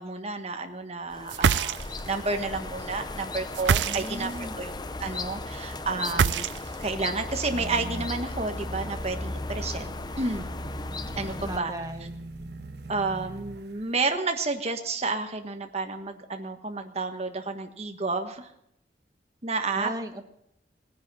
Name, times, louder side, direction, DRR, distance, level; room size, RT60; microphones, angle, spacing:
voice 1, 0.0-4.3 4.6-4.7 5.0-6.5 6.8-10.5 11.2-11.7 12.9-18.5 19.4-19.9, right 3 dB, 35° right, 5 dB, 1.4 m, -31 dB
sound 1, 1.1-11.6, left 2 dB, 25° left, 0.6 m, -36 dB
sound 2, 1.3-2.1 3.5-4.4 6.0-6.9, right 7 dB, 85° right, 0.5 m, -24 dB
voice 2, 3.8-4.7 11.4-12.2 19.7-20.3, right 1 dB, 20° right, 4 dB, 1.1 m, -36 dB
sound 3, 7.5-14.0, right 2 dB, 70° right, 1.2 m, -43 dB
18.5 x 10.0 x 5.7 m, 0.76 s
head